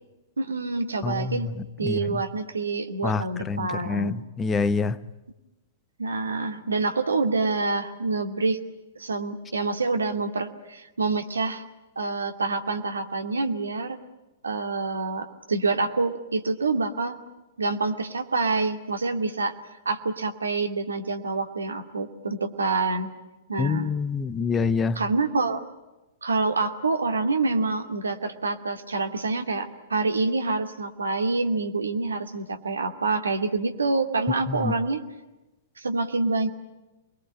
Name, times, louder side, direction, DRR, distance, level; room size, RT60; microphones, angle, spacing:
voice 1, 0.4-1.5 1.8-4.2 6.0-8.6 9.0-11.6 12.0-14.0 14.4-17.2 17.6-19.5 19.9-23.1 23.5-23.9 24.9-25.6 26.2-35.0 35.8-36.5, right 3 dB, 75° right, 2.4 m, -27 dB
voice 2, 1.0-1.5 1.8-2.2 3.0-5.0 23.6-25.0 34.5-34.7, left 4 dB, 15° left, 1.0 m, -26 dB
28.5 x 22.0 x 8.9 m
figure-of-eight pair, 105°, 0 cm